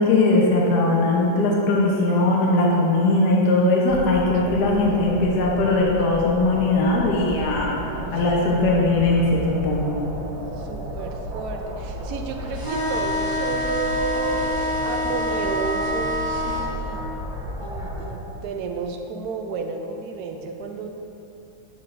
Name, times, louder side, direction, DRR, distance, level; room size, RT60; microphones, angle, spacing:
voice 1, 0.0-7.7 8.1-10.0, left 2 dB, 60° left, -3 dB, 1.4 m, -20 dB
sound 1, 3.9-18.1, equal, 85° right, 2.0 m, -33 dB
voice 2, 4.5-5.2 7.9-8.7 10.6-17.1 17.6-21.0, right 4 dB, 65° right, 4 dB, 1.0 m, -32 dB
sound 2, 12.5-16.7, left 1 dB, 25° right, 0.5 m, -26 dB
8.9 x 7.5 x 2.6 m, 2.8 s
omnidirectional pair, 2.1 m